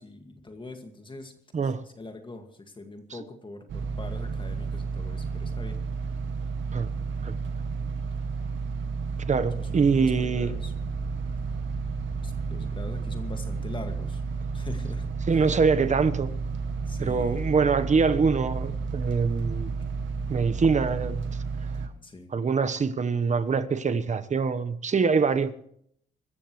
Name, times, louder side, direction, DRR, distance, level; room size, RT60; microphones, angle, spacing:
voice 1, 0.0-1.3 1.6-5.8 9.5-10.7 12.2-14.2 14.5-15.4 16.9-17.4 22.0-22.3, left 2 dB, 25° left, 2.1 m, -43 dB
sound 1, 3.7-21.9, right 5 dB, 70° right, 2.0 m, -32 dB
voice 2, 9.3-10.5 15.3-16.4 17.0-19.7 20.3-21.2 22.3-25.5, right 5 dB, 35° right, 1.2 m, -24 dB
sound 2, 10.5-21.2, equal, 5° right, 4.0 m, -45 dB
24.5 x 14.0 x 3.2 m
cardioid pair, 90°, 20 cm